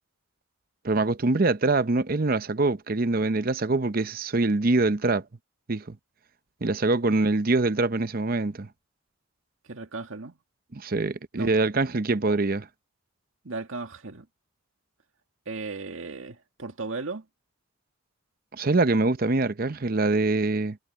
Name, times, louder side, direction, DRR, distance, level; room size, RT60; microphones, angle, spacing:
voice 1, 0.8-5.3 5.7-6.0 6.6-8.7 10.7-12.6 18.5-20.8, right 3 dB, 45° right, 0.7 m, -24 dB
voice 2, 9.6-10.4 11.3-11.5 12.2-12.4 13.4-14.3 15.5-17.3, right 3 dB, 75° right, 1.8 m, -36 dB
head